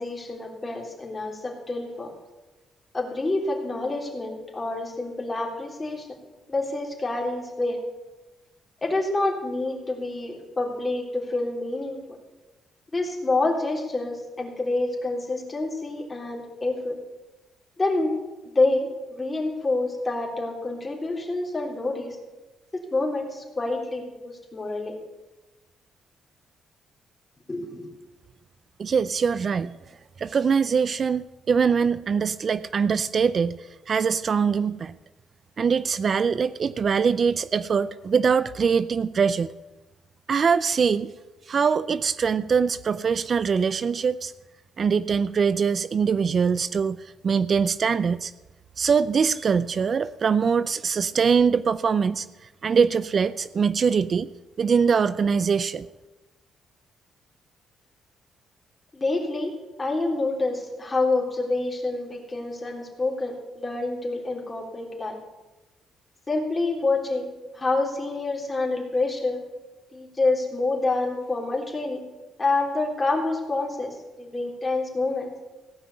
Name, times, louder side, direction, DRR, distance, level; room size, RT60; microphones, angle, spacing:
voice 1, 0.0-2.1 2.9-6.1 6.5-7.8 8.8-12.2 12.9-17.0 17.8-18.2 18.4-22.2 22.7-25.0 27.5-27.9 58.9-65.2 66.3-67.3 67.5-69.4 69.9-72.0 72.4-75.3, left 2 dB, 25° left, 0 dB, 3.5 m, -27 dB
voice 2, 28.8-29.8 30.2-34.9 35.6-39.5 40.3-41.1 41.5-44.3 44.8-48.3 48.8-52.3 52.6-54.3 54.6-55.9, right 6 dB, 45° right, 15 dB, 0.4 m, -23 dB
16.5 x 5.8 x 9.5 m, 1.1 s
cardioid pair, 90°, 0 cm